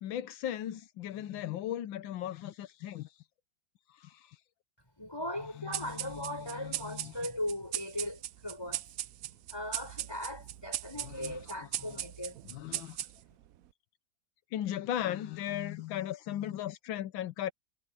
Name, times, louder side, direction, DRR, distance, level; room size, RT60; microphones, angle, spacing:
voice 1, 0.0-3.2 3.9-4.4 5.6-7.1 11.0-11.4 11.8-12.0 12.5-13.0 14.5-17.5, left 11 dB, 85° left, 1.5 m, -37 dB
voice 2, 5.0-8.9 9.5-12.4, left 1 dB, 10° left, 7.2 m, -38 dB
sound 1, 5.7-13.5, right 13 dB, 75° right, 0.8 m, -39 dB
omnidirectional pair, 2.1 m